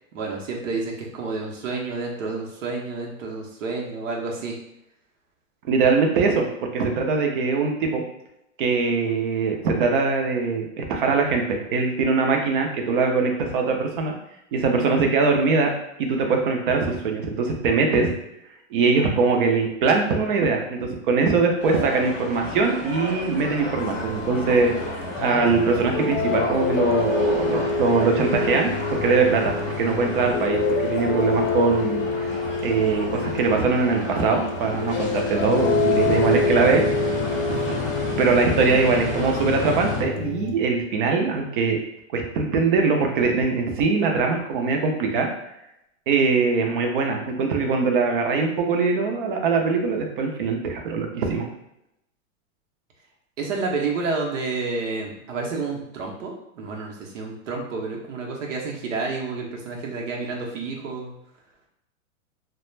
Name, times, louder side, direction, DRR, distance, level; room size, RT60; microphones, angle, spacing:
voice 1, 0.1-4.6 37.5-37.9 53.4-61.1, right 4 dB, 70° right, 0 dB, 0.8 m, -30 dB
voice 2, 5.6-8.0 8.6-14.1 14.5-15.7 16.0-18.1 18.7-24.7 25.0-28.7 29.0-32.3 32.6-36.8 38.2-41.8 42.1-45.3 46.1-51.5, right 4 dB, 40° right, 2 dB, 0.5 m, -22 dB
sound 1, 21.6-40.0, left 2 dB, 20° left, 0.5 m, -32 dB
sound 2, 23.7-40.6, left 4 dB, 80° left, 0.5 m, -27 dB
2.3 x 2.1 x 3.1 m, 0.83 s
hypercardioid pair, 155°, 40 cm